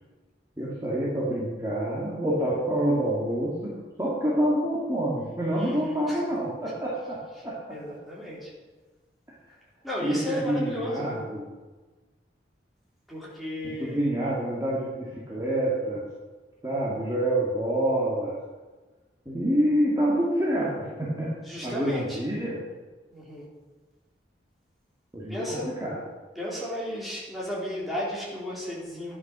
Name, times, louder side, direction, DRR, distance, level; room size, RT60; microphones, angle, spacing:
voice 1, 0.6-7.8 10.0-11.5 13.8-16.0 16.6-18.4 19.3-21.3 21.6-22.6 25.1-26.0, right 1 dB, 20° right, -7 dB, 2.3 m, -27 dB
voice 2, 5.6-6.3 7.7-8.5 9.8-11.2 13.1-14.0 21.4-22.2 23.1-23.5 25.3-25.7 26.4-29.2, equal, ahead, -7 dB, 3.9 m, -34 dB
12.0 x 9.7 x 6.2 m, 1.3 s
head